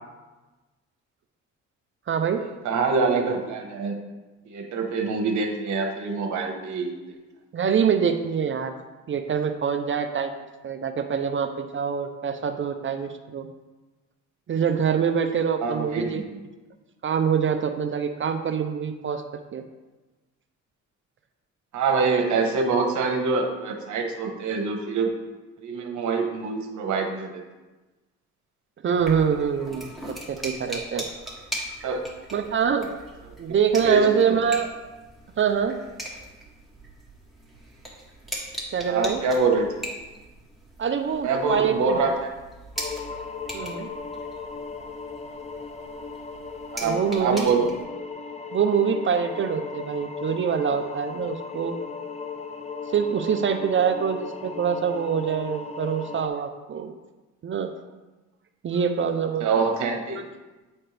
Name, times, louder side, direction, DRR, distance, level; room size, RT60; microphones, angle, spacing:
voice 1, 2.1-2.4 7.5-8.7 9.1-10.4 10.6-13.5 14.5-16.2 17.0-19.2 19.5-19.6 28.8-29.9 30.3-31.0 32.3-32.9 33.4-34.7 35.4-35.7 38.7-39.2 40.8-42.0 43.5-43.9 46.8-47.5 48.5-51.7 52.9-57.0 57.4-57.7 58.6-59.9 60.2-60.3, right 7 dB, 40° right, 7 dB, 0.5 m, -25 dB
voice 2, 2.6-3.9 4.5-6.9 15.6-16.2 21.7-25.1 25.6-27.4 31.8-32.0 33.8-34.4 38.9-39.7 41.2-42.3 46.7-47.7 59.4-60.2, right 4 dB, 75° right, 3 dB, 1.2 m, -25 dB
sound 1, 29.0-47.8, right 1 dB, ahead, 1.6 m, -40 dB
sound 2, 42.8-56.3, left 4 dB, 20° left, 0.6 m, -37 dB
8.8 x 4.3 x 3.3 m, 1.2 s
cardioid pair, 90°, 30 cm